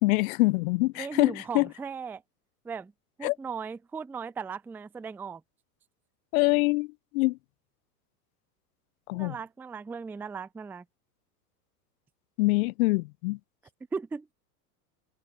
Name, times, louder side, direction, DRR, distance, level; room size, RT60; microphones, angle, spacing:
voice 1, 0.0-1.7 3.2-3.4 6.3-6.9 7.1-7.4 9.1-9.3 12.4-13.4, left 23 dB, 60° left, 0.5 m, -24 dB
voice 2, 1.0-2.2 2.6-2.9 3.2-5.4 9.1-10.8 13.9-14.3, right 5 dB, 5° right, 0.4 m, -37 dB
hypercardioid pair, 95°, 48 cm